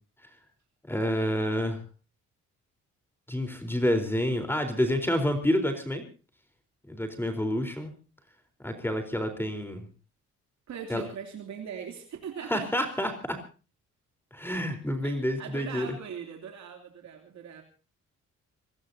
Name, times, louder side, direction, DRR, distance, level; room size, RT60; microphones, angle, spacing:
voice 1, 0.9-1.8 3.3-6.0 6.9-7.9 8.6-9.9 10.9-11.0 12.5-13.4 14.3-15.9, equal, 5° left, 6 dB, 4.0 m, -28 dB
voice 2, 10.7-12.7 15.0-17.6, right 7 dB, 65° right, 3 dB, 3.1 m, -40 dB
25.5 x 19.0 x 2.8 m, 0.37 s
cardioid pair, 90°, 30 cm